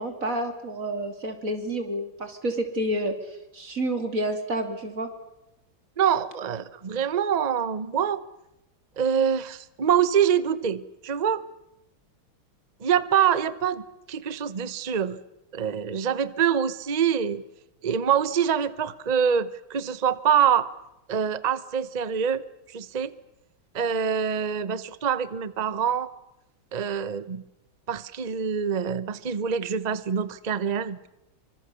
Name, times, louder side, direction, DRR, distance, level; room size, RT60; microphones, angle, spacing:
voice 1, 0.0-3.1 3.5-5.1, right 1 dB, 40° right, 6 dB, 3.0 m, -29 dB
voice 2, 6.0-8.2 9.0-11.4 12.8-13.8 14.1-15.2 15.5-17.4 17.8-20.7 21.1-22.4 22.7-23.1 23.7-26.1 26.7-27.4 27.9-31.1, right 8 dB, 80° right, 15 dB, 0.3 m, -25 dB
25.5 x 25.0 x 6.8 m, 0.88 s
omnidirectional pair, 2.3 m